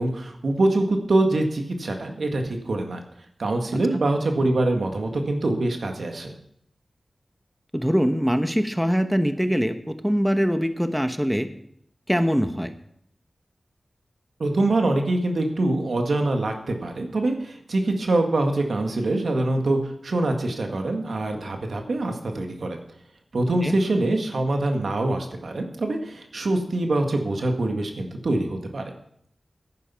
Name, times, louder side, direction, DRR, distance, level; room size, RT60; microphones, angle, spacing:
voice 1, 0.0-3.0 3.4-6.3 14.4-22.8 23.3-28.9, right 2 dB, 80° right, 4 dB, 1.8 m, -24 dB
voice 2, 7.7-11.5 12.1-12.7 23.6-23.8, equal, 5° right, 8 dB, 1.1 m, -23 dB
10.5 x 9.9 x 5.7 m, 0.69 s
cardioid pair, 45°, 0 cm